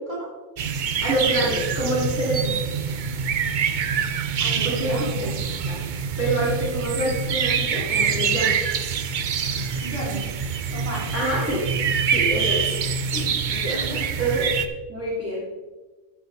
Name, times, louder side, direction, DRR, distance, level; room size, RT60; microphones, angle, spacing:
sound 1, 0.6-14.7, right 6 dB, 55° right, 0.5 m, -25 dB
voice 1, 1.0-2.5 4.6-5.3 5.7-5.8 6.2-8.5 11.1-11.6 12.1-12.7 13.5-13.8 14.2-14.4 14.9-15.4, right 1 dB, 10° right, -7 dB, 2.6 m, -26 dB
voice 2, 4.4-5.4 9.8-10.3 10.7-11.1 13.1-13.4 13.7-14.0, right 1 dB, 25° left, -6 dB, 4.0 m, -33 dB
13.0 x 6.9 x 4.1 m, 1.2 s
omnidirectional pair, 1.4 m